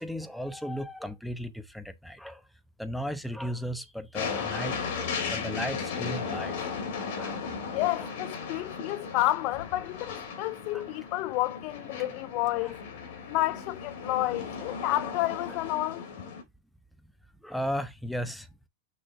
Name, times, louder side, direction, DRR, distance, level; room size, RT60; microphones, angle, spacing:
voice 1, 0.0-2.4 2.8-6.6 7.2-7.4 8.0-8.1 10.7-10.8 12.6-12.7 17.4-18.5, equal, ahead, 0.8 m, -35 dB
sound 1, 4.1-16.4, left 5 dB, 65° left, 3.2 m, -36 dB
voice 2, 7.7-12.8 13.3-16.1, left 17 dB, 45° left, 0.4 m, -30 dB
6.4 x 5.7 x 2.6 m
supercardioid pair, 145°, 0 cm